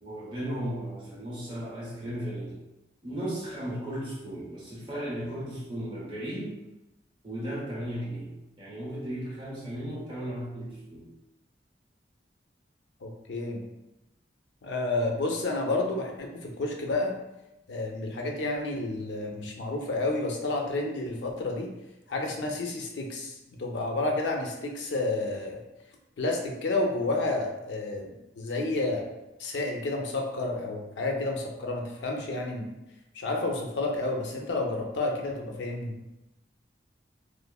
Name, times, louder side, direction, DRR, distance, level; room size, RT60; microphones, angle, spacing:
voice 1, 0.0-2.5 3.0-6.6 7.2-8.3 8.6-11.1, right 1 dB, 30° right, -7 dB, 0.9 m, -35 dB
voice 2, 13.0-13.6 14.6-17.1 17.7-21.7 22.1-25.6 26.2-29.0 29.4-32.7 33.1-35.9, left 2 dB, 85° left, 1 dB, 0.5 m, -30 dB
3.1 x 2.0 x 2.3 m, 0.95 s
head